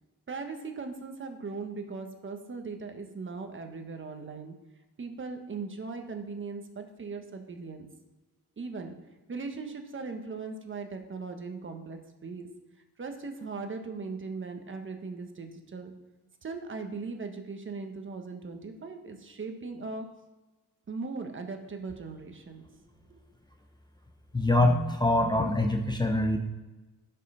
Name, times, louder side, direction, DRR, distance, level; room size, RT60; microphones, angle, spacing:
voice 1, 0.3-4.5 5.0-7.9 8.6-9.0 9.3-12.5 13.0-15.9 16.4-20.1 20.9-22.8 23.1-23.2, right 4 dB, 35° right, 5 dB, 1.3 m, -39 dB
voice 2, 24.3-26.4, left 1 dB, 10° left, 3 dB, 0.8 m, -24 dB
11.0 x 5.6 x 5.6 m, 1.2 s
cardioid pair, 115°, 36 cm